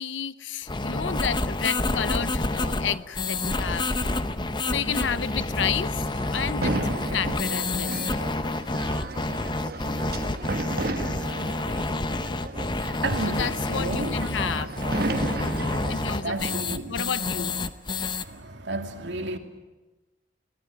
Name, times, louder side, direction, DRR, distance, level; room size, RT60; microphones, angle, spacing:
voice 1, 0.0-3.9 4.7-6.0 6.3-6.7 7.1-8.0 13.3-14.7 15.9-16.6 16.9-17.6, left 7 dB, 80° left, 0.8 m, -31 dB
sound 1, 0.7-18.2, left 2 dB, 25° left, 0.8 m, -28 dB
sound 2, 3.5-16.0, right 2 dB, 50° right, 1.4 m, -34 dB
voice 2, 13.0-14.6 15.6-17.0 17.4-17.5 18.2-19.4, right 2 dB, 70° right, 2.3 m, -33 dB
23.5 x 17.0 x 9.4 m
head